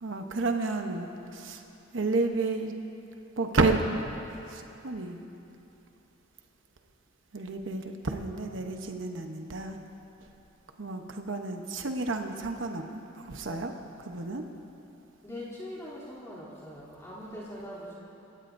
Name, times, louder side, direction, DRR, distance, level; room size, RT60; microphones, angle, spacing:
voice 1, 0.0-1.6 1.9-2.7 3.4-3.8 4.5-5.2 7.3-9.8 10.8-13.7 14.0-14.4, right 3 dB, 70° right, 4 dB, 0.9 m, -31 dB
voice 2, 15.2-18.0, left 1 dB, 15° left, -9 dB, 3.1 m, -42 dB
27.0 x 15.5 x 2.6 m, 2.9 s
head